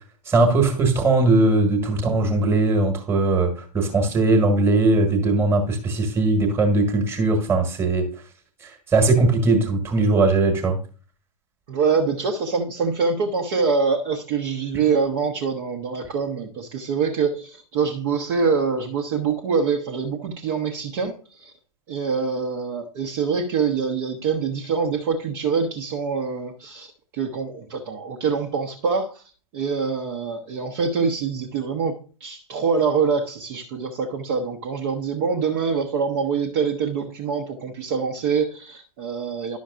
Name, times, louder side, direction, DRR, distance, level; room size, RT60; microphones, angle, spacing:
voice 1, 0.3-8.1 8.9-10.8, right 2 dB, 10° right, 5 dB, 1.5 m, -19 dB
voice 2, 11.7-21.5 21.9-29.2 29.5-39.6, right 5 dB, 35° right, 1 dB, 0.9 m, -25 dB
11.0 x 6.2 x 2.5 m, 0.37 s
figure-of-eight pair, 110°, 20 cm